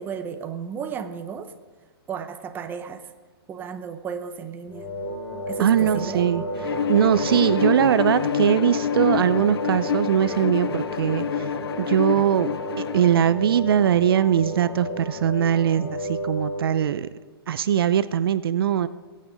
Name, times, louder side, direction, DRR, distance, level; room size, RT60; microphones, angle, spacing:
voice 1, 0.0-1.5 2.1-3.1 3.5-4.9 5.5-6.3, right 7 dB, 15° right, 8 dB, 0.8 m, -34 dB
sound 1, 4.7-16.9, equal, 15° left, 4.4 m, -32 dB
voice 2, 5.6-6.4 6.9-11.5 11.8-17.1 17.5-18.9, right 9 dB, 65° right, 14 dB, 0.5 m, -21 dB
Bowed string instrument, 6.6-13.2, left 9 dB, 70° left, 0.4 m, -28 dB
17.0 x 8.7 x 5.1 m, 1.4 s
hypercardioid pair, 140°, 13 cm